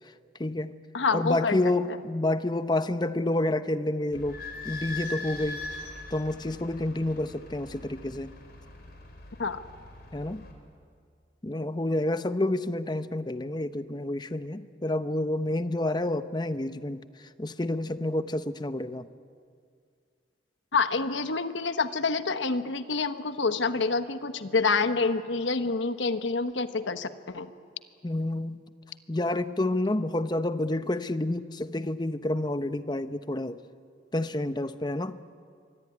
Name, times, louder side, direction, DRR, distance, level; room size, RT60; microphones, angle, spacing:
voice 1, 0.4-0.8 1.1-4.4 4.6-5.6 6.1-8.3 10.1-10.4 11.4-17.0 17.4-19.1 28.0-28.6 29.1-33.6 34.1-35.2, left 1 dB, 25° left, 12 dB, 0.8 m, -29 dB
voice 2, 0.9-1.6 1.9-2.0 9.4-9.6 20.7-27.5, left 4 dB, 90° left, 10 dB, 1.2 m, -27 dB
Idling / Squeak, 4.1-10.5, left 2 dB, 55° left, 4.4 m, -41 dB
25.0 x 24.0 x 9.6 m, 2.2 s
head